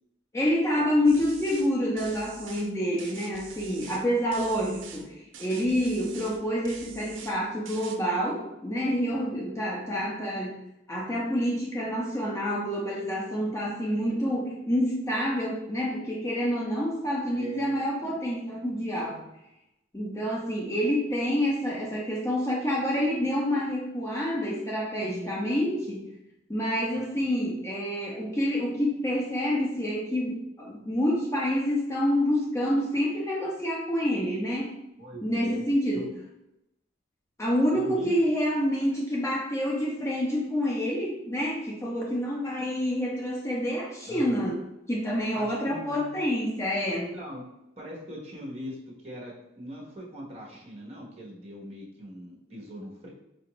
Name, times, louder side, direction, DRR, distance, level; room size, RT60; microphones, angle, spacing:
voice 1, 0.3-10.6 10.9-19.2 19.9-26.0 26.5-34.7 35.2-36.0 37.4-44.6 44.9-47.1, equal, 15° left, -3 dB, 0.5 m, -28 dB
sound 1, 1.0-1.7 2.0-2.7 3.0-4.1 4.3-5.1 5.3-6.4 6.6-7.4 7.6-8.0, right 6 dB, 75° right, 0.4 m, -45 dB
voice 2, 17.4-17.8 25.0-25.3 26.9-27.3 35.0-35.6 35.9-36.0 37.7-38.1 44.1-44.5 45.3-46.1 47.1-47.4 47.8-48.8 49.0-53.1, equal, 35° right, -3 dB, 1.0 m, -40 dB
4.7 x 2.5 x 2.9 m, 0.88 s
head